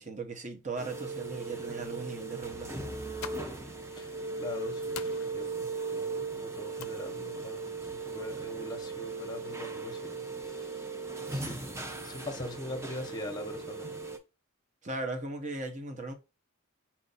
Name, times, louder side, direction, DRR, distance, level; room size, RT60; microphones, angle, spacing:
voice 1, 0.0-3.0 14.8-16.1, right 3 dB, 35° right, 0.8 m, -38 dB
sound 1, 0.8-14.2, right 3 dB, 10° right, 0.5 m, -38 dB
sound 2, 2.9-8.9, left 8 dB, 65° left, 0.4 m, -50 dB
voice 2, 4.0-10.8 11.3-13.9, left 2 dB, 20° left, 0.8 m, -42 dB
4.3 x 2.6 x 4.0 m
head